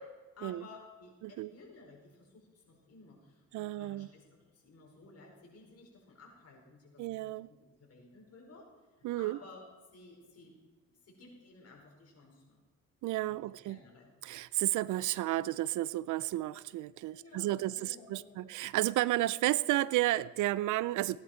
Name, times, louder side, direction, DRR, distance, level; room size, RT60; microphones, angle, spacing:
voice 1, 0.0-8.7 8.9-9.6 9.9-10.5 10.9-12.6 13.3-13.4 13.6-14.1 17.1-18.5, left 3 dB, 55° left, 4.8 m, -55 dB
voice 2, 3.5-4.1 7.0-7.5 9.0-9.4 13.0-13.8 14.2-21.2, right 16 dB, 80° right, 0.5 m, -32 dB
17.0 x 10.5 x 4.5 m
cardioid pair, 90°, 30 cm